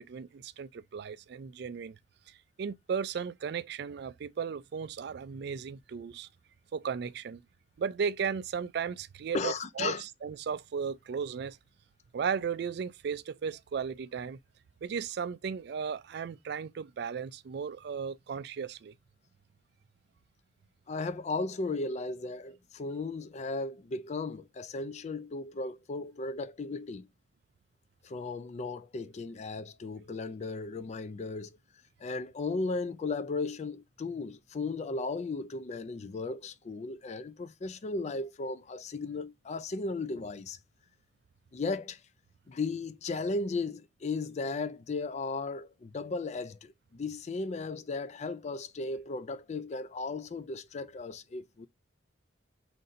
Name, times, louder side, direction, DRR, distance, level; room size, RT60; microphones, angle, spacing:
voice 1, 0.0-2.0 2.6-6.3 6.7-7.4 7.8-11.6 12.1-14.4 14.8-18.9, right 6 dB, 60° right, 0.3 m, -35 dB
voice 2, 9.3-10.0 20.9-27.1 28.0-31.5 32.0-40.6 41.5-42.0 42.5-51.7, left 3 dB, 40° left, 0.4 m, -35 dB
4.0 x 2.6 x 3.8 m
head